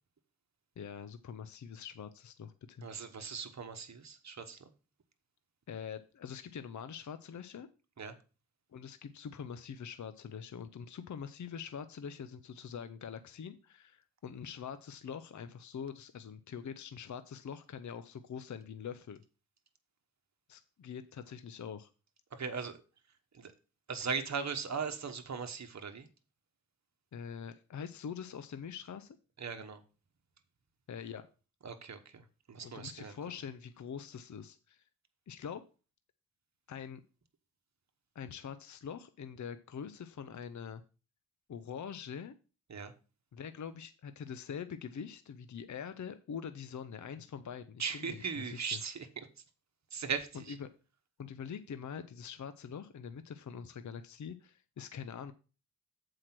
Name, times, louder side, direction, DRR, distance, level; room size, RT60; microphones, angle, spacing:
voice 1, 0.8-2.9 5.7-7.7 8.7-19.2 20.5-21.9 27.1-29.2 30.9-31.3 32.6-34.8 35.3-35.6 36.7-37.0 38.1-40.8 41.5-42.3 43.3-48.8 50.3-50.7 51.2-55.3, left 7 dB, 55° left, 0.6 m, -44 dB
voice 2, 2.8-4.6 8.0-8.1 22.3-22.8 23.3-23.5 23.9-26.1 29.4-29.8 31.6-32.2 32.5-33.1 42.7-42.9 47.8-49.3 49.9-50.5, right 5 dB, 50° right, 1.2 m, -38 dB
7.4 x 4.9 x 5.9 m
cardioid pair, 70°, 35 cm